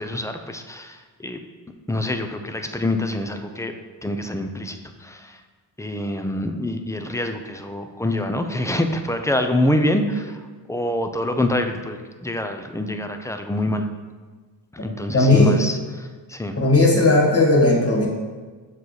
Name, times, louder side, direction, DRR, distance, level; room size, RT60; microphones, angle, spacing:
voice 1, 0.0-1.4 1.9-3.7 4.0-5.4 5.8-10.4 10.7-13.9 14.8-16.6, left 1 dB, 5° left, 6 dB, 0.5 m, -26 dB
voice 2, 15.1-15.5 16.6-18.1, left 2 dB, 30° left, -2 dB, 1.7 m, -16 dB
7.3 x 4.1 x 6.4 m, 1.4 s
cardioid pair, 95°, 46 cm